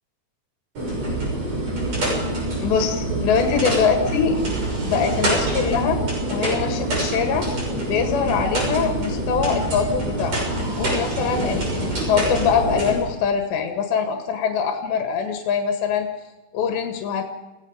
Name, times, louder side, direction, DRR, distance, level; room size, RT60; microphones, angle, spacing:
sound 1, 0.8-13.0, right 1 dB, 35° right, 7.5 m, -25 dB
voice 1, 2.6-4.4 4.8-6.0 6.3-7.5 7.9-10.5 10.8-16.1 16.5-17.2, left 6 dB, 85° left, 5 dB, 4.0 m, -23 dB
29.5 x 18.0 x 5.4 m, 1.1 s
omnidirectional pair, 5.0 m